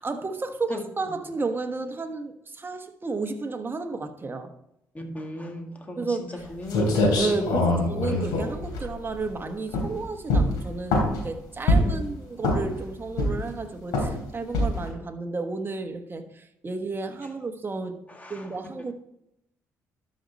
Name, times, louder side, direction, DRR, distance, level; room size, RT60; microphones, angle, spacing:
voice 1, 0.0-4.5 6.0-6.4 7.2-18.0 18.3-18.9, right 3 dB, 30° right, 1.2 m, -32 dB
voice 2, 4.9-7.3 7.6-7.8 11.8-12.1 18.1-18.5, left 1 dB, 20° left, 2.1 m, -37 dB
sound 1, 6.4-6.5 6.7-9.3 9.7-10.0 10.3-11.2 11.7-12.0 12.4-12.8 13.2-13.6 13.9-14.2 14.5-14.9, left 1 dB, 90° left, 3.0 m, -23 dB
12.5 x 5.4 x 4.2 m
supercardioid pair, 60°, 7 cm